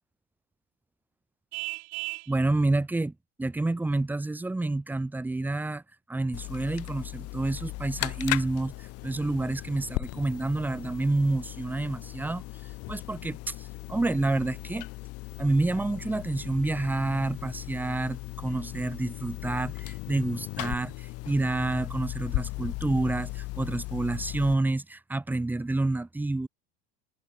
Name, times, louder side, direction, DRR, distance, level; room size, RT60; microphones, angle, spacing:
Vehicle horn car horn honking, 1.5-2.3, right 30 dB, 65° right, 3.5 m, -35 dB
voice 1, 2.3-3.1 3.4-5.8 6.1-14.9 15.4-26.5, right 2 dB, 5° right, 3.9 m, -29 dB
sound 1, 6.3-24.5, left 21 dB, 45° left, 3.9 m, -37 dB
cardioid pair, 175°, 33 cm